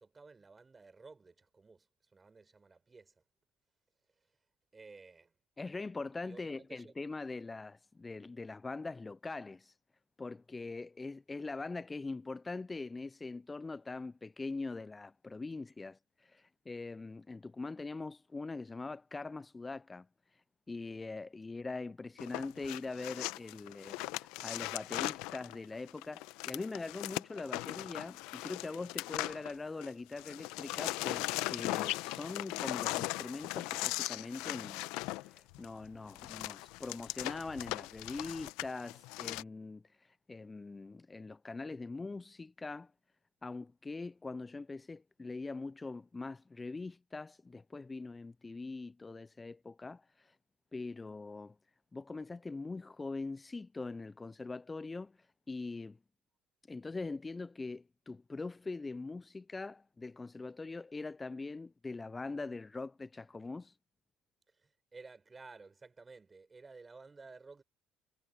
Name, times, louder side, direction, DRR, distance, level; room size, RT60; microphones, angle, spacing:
voice 1, 0.0-3.2 4.7-5.3 6.2-6.9 64.5-67.6, right 4 dB, 25° right, 4.2 m, -55 dB
voice 2, 5.6-9.8 10.2-42.9 43.4-50.4 50.7-51.6 51.9-56.0 56.7-63.8, left 3 dB, 20° left, 0.3 m, -42 dB
sound 1, 22.2-29.9 30.2-39.4, left 21 dB, 80° left, 0.8 m, -39 dB
supercardioid pair, 75°, 0 cm